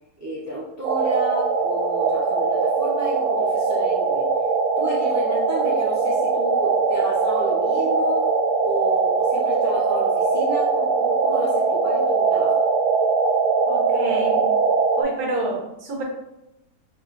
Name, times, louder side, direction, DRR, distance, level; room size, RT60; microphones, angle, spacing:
voice 1, 0.2-4.3 4.8-8.2 8.6-12.6, right 1 dB, 30° right, -6 dB, 0.3 m, -32 dB
sound 1, 0.8-15.0, right 4 dB, 90° right, 1.2 m, -21 dB
voice 2, 13.7-14.5 15.0-16.0, right 2 dB, 70° right, 0 dB, 1.2 m, -28 dB
5.2 x 2.5 x 2.5 m, 0.91 s
omnidirectional pair, 1.7 m